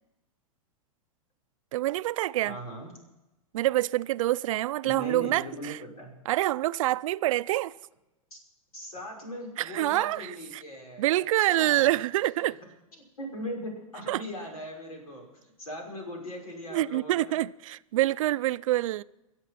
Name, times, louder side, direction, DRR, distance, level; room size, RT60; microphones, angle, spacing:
voice 1, 1.7-2.6 3.5-5.8 6.3-7.8 9.6-10.6 11.0-12.6 14.1-14.2 16.7-19.0, right 15 dB, 65° right, 0.5 m, -26 dB
voice 2, 2.4-2.9 4.8-6.1 8.3-8.4 8.7-11.9 13.2-17.4, equal, 90° left, 5.7 m, -39 dB
23.0 x 7.8 x 5.8 m
hypercardioid pair, 115°, 18 cm